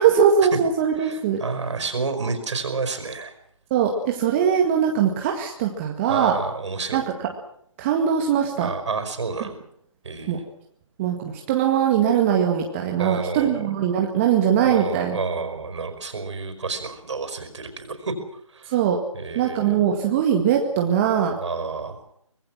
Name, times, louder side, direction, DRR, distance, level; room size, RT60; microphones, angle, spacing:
voice 1, 0.0-1.4 3.7-6.4 6.9-7.0 7.8-8.7 10.3-10.4 11.0-15.2 18.7-19.0 19.3-21.4, right 8 dB, 25° right, 2 dB, 2.0 m, -21 dB
voice 2, 1.0-3.3 6.1-7.0 8.6-9.6 10.0-10.4 13.0-13.7 14.6-18.1 18.5-18.8 19.1-19.8 21.4-22.0, right 4 dB, 60° right, 8 dB, 5.1 m, -30 dB
24.5 x 20.5 x 6.2 m, 0.68 s
figure-of-eight pair, 150°, 17 cm